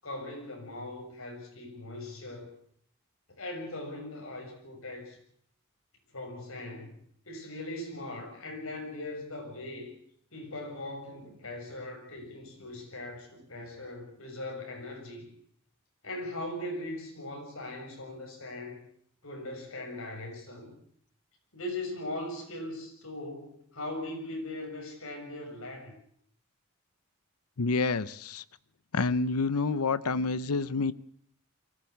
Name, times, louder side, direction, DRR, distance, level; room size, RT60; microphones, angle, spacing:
voice 1, 0.0-2.5 3.4-5.2 6.1-7.0 7.3-9.9 10.3-15.3 16.0-18.8 19.2-20.8 21.5-25.9, left 1 dB, 70° left, 2 dB, 7.1 m, -40 dB
voice 2, 27.6-28.4 28.9-30.9, left 3 dB, 90° left, 16 dB, 0.8 m, -28 dB
23.5 x 15.5 x 8.6 m, 0.66 s
head